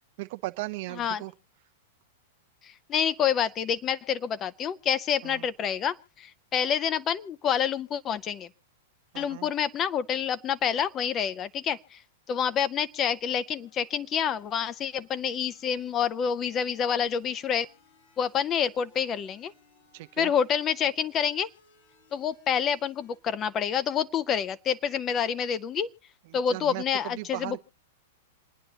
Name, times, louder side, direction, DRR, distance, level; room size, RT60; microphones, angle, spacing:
voice 1, 0.2-1.3 5.2-5.5 9.1-9.5 19.9-20.3 26.3-27.6, right 21 dB, 55° right, 0.7 m, -37 dB
voice 2, 2.6-8.5 9.2-12.0 12.3-17.7 18.2-19.5 20.2-21.5 22.1-25.9 26.3-27.6, left 8 dB, 30° left, 0.7 m, -28 dB
sound 1, 13.6-23.2, left 5 dB, 70° left, 5.2 m, -63 dB
27.5 x 9.9 x 2.9 m
hypercardioid pair, 105°, 0 cm